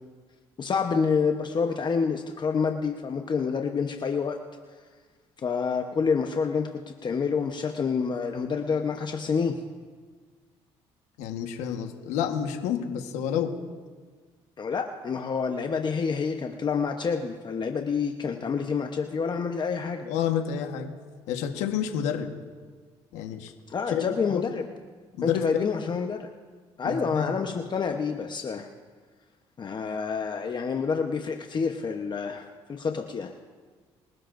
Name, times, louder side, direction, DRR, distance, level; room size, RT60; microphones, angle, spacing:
voice 1, 0.6-4.4 5.4-9.5 14.6-20.1 23.7-24.7 25.2-26.3 26.8-28.7 29.6-33.3, left 5 dB, 40° left, 4 dB, 1.0 m, -28 dB
voice 2, 11.2-13.5 20.0-20.9 21.3-22.3 23.1-23.5 23.9-24.4 25.2-25.4 26.8-27.3, left 8 dB, 90° left, 4 dB, 1.4 m, -29 dB
25.0 x 12.0 x 2.6 m, 1.5 s
supercardioid pair, 80°, 11 cm